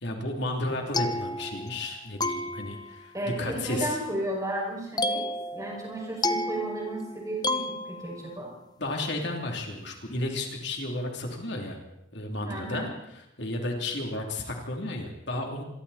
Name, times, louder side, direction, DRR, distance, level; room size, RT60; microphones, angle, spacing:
voice 1, 0.0-4.0 8.8-11.8 12.1-12.9 13.4-15.6, left 1 dB, 55° left, 2 dB, 3.2 m, -33 dB
sound 1, 0.7-1.9 2.2-3.1 5.0-8.4, left 2 dB, 20° left, 0.8 m, -31 dB
voice 2, 3.1-8.5 12.4-12.9, right 1 dB, 15° right, -2 dB, 6.0 m, -33 dB
26.5 x 22.5 x 4.3 m, 0.84 s
head